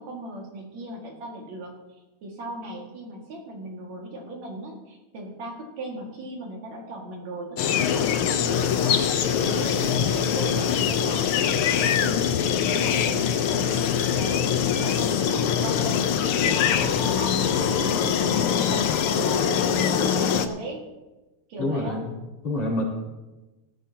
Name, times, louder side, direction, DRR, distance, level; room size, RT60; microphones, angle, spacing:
voice 1, 0.0-1.7 2.2-9.0 9.4-14.5 14.8-16.1 16.4-20.8 21.5-22.0, right 1 dB, 65° right, -1 dB, 3.3 m, -37 dB
sound 1, 7.6-20.5, left 8 dB, 85° left, 1.2 m, -23 dB
voice 2, 21.6-22.2 22.4-22.8, left 1 dB, 60° left, -4 dB, 4.4 m, -27 dB
18.5 x 14.0 x 2.9 m, 1.1 s
omnidirectional pair, 3.5 m